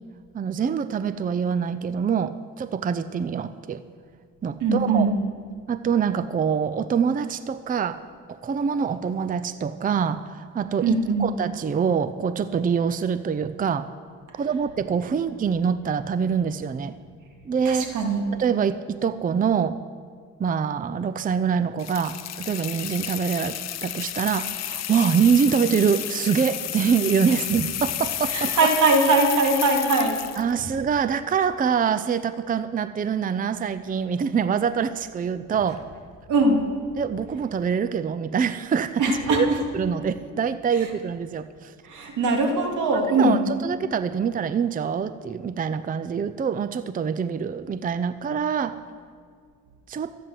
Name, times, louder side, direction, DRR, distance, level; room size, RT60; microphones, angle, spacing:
voice 1, 0.3-3.8 4.4-5.1 5.7-8.0 8.3-13.9 14.4-17.0 17.5-18.0 18.3-19.8 20.4-28.7 30.4-35.8 37.0-41.7 42.9-48.8 49.9-50.1, right 6 dB, 30° right, 13 dB, 0.5 m, -25 dB
voice 2, 4.6-5.1 10.8-11.3 17.7-18.2 28.3-30.2 36.3-36.6 39.0-39.4 41.9-43.4, right 2 dB, 80° right, 3 dB, 2.3 m, -21 dB
sound 1, 21.8-30.5, left 11 dB, 60° left, 0.8 m, -31 dB
13.5 x 9.3 x 7.6 m, 2.1 s
cardioid pair, 90°, 30 cm